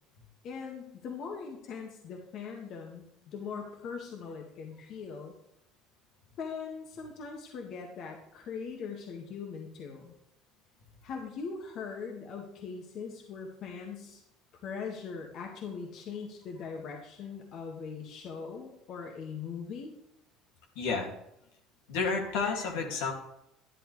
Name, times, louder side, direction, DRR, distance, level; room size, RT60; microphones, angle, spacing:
voice 1, 0.4-5.3 6.4-10.1 11.0-14.2 14.6-19.9, left 5 dB, 60° left, 1 dB, 1.8 m, -41 dB
voice 2, 20.8-21.1 21.9-23.1, left 4 dB, 80° left, 1 dB, 2.3 m, -30 dB
12.0 x 10.5 x 3.3 m, 0.78 s
hypercardioid pair, 75°, 0 cm